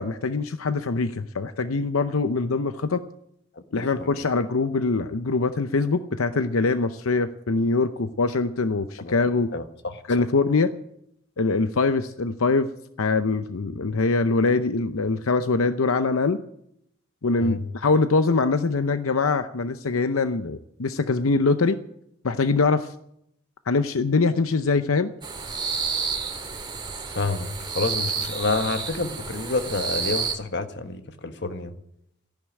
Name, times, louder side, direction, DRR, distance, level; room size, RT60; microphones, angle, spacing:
voice 1, 0.0-3.0 3.7-9.5 10.1-10.7 11.4-12.7 13.0-16.4 17.2-21.8 22.2-22.9 23.7-25.1, left 3 dB, 85° left, 10 dB, 0.7 m, -23 dB
voice 2, 3.8-4.2 9.0-9.2 9.5-10.0 17.4-17.6 27.1-31.7, left 3 dB, 55° left, 8 dB, 1.4 m, -29 dB
sound 1, 25.2-30.4, right 5 dB, 20° right, 1.9 m, -30 dB
15.0 x 11.0 x 8.8 m, 0.76 s
head